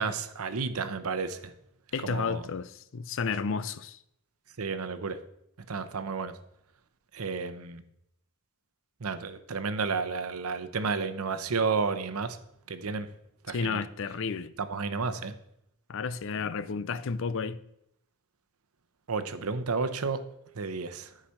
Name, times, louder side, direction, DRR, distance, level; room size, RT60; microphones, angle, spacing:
voice 1, 0.0-1.5 2.0-2.5 4.6-5.2 5.7-6.3 7.1-7.8 9.0-12.4 12.7-13.1 13.5-13.8 14.6-15.3 19.1-20.2 20.5-21.1, right 4 dB, 90° right, 0.8 m, -31 dB
voice 2, 1.9-4.0 13.5-14.5 15.9-17.6, left 5 dB, 60° left, 0.5 m, -32 dB
11.5 x 5.0 x 5.7 m
head